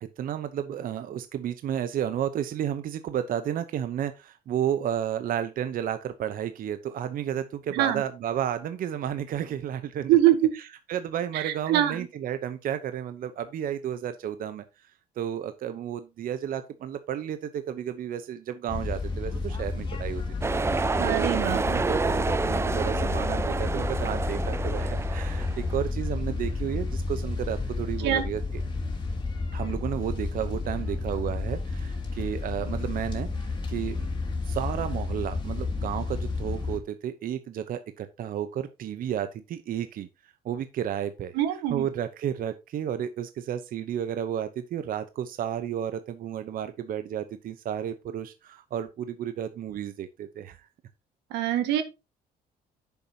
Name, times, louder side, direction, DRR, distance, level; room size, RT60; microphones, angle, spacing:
voice 1, 0.0-10.2 10.5-14.9 15.2-20.2 21.0-28.6 29.5-34.1 34.4-41.4 41.7-50.7, right 10 dB, 55° right, 10 dB, 0.9 m, -32 dB
voice 2, 10.1-10.5 11.3-12.1 21.0-21.6 28.0-28.2 41.3-41.8 51.3-51.8, right 12 dB, 90° right, 9 dB, 1.7 m, -23 dB
sound 1, 18.7-36.8, left 3 dB, 25° left, 2.9 m, -31 dB
sound 2, 20.4-25.7, right 4 dB, 15° right, 0.4 m, -29 dB
9.9 x 7.1 x 2.8 m, 0.25 s
cardioid pair, 110°, 17 cm